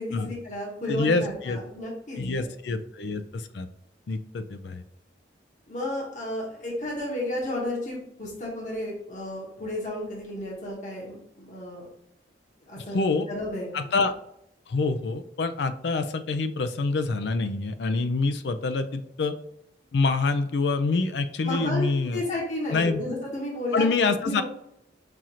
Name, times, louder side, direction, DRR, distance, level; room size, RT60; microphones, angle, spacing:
voice 1, 0.0-2.4 5.7-11.9 12.7-13.9 21.4-24.4, left 1 dB, 40° left, -3 dB, 1.1 m, -33 dB
voice 2, 0.9-1.6 2.2-3.7 4.1-4.8 12.8-13.3 13.7-14.1 14.7-19.3 19.9-22.2 22.7-23.0 23.7-24.4, left 3 dB, 65° left, 10 dB, 0.4 m, -26 dB
5.7 x 2.5 x 2.9 m, 0.78 s
head